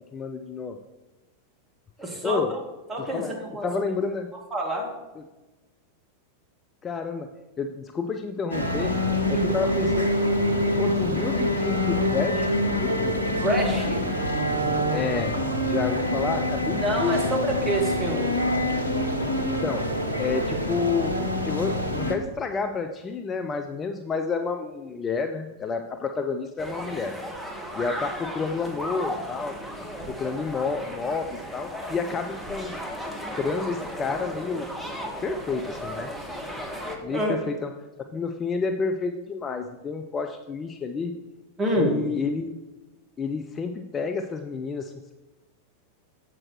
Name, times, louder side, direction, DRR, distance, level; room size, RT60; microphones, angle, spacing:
voice 1, 0.1-0.8 2.0-2.6 3.0-4.3 5.2-5.3 6.8-7.3 7.6-8.9 9.3-10.1 10.8-13.2 14.9-17.5 19.4-19.9 20.2-21.2 21.4-27.2 27.8-29.6 30.1-32.7 33.4-34.7 35.2-36.1 37.0-37.7 38.1-41.1 41.8-42.6 43.2-45.1, left 4 dB, 20° left, 6 dB, 0.5 m, -30 dB
voice 2, 2.0-2.4 2.9-3.7 4.5-4.9 9.3-9.6 13.3-14.0 16.7-18.3 37.1-37.4 41.6-42.0, right 1 dB, 15° right, 0 dB, 2.1 m, -27 dB
sound 1, 8.5-22.1, left 1 dB, 85° left, 0.9 m, -25 dB
sound 2, 26.6-37.0, equal, ahead, 1.3 m, -35 dB
7.5 x 6.1 x 4.5 m, 1.1 s
figure-of-eight pair, 90°, 0 cm